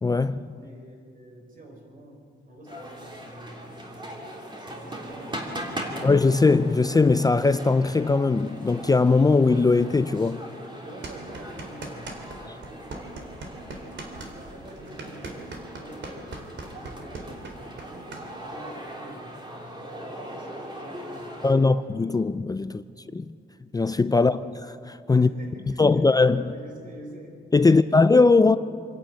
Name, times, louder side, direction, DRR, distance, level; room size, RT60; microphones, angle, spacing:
voice 1, 0.0-0.5 6.0-10.4 12.4-12.6 21.4-23.4 23.7-25.3 25.8-26.4 27.5-28.6, left 3 dB, 20° left, 0.4 m, -20 dB
voice 2, 0.5-4.4 4.6-6.1 10.8-13.7 14.3-18.1 18.4-21.7 22.7-22.8 25.1-28.0, right 1 dB, 40° right, 4.7 m, -46 dB
sound 1, 2.7-21.5, right 1 dB, 20° right, 3.1 m, -40 dB
sound 2, 11.0-12.4 12.6-18.2, right 3 dB, 60° right, 3.5 m, -39 dB
26.0 x 11.5 x 9.0 m
cardioid pair, 125°, 21 cm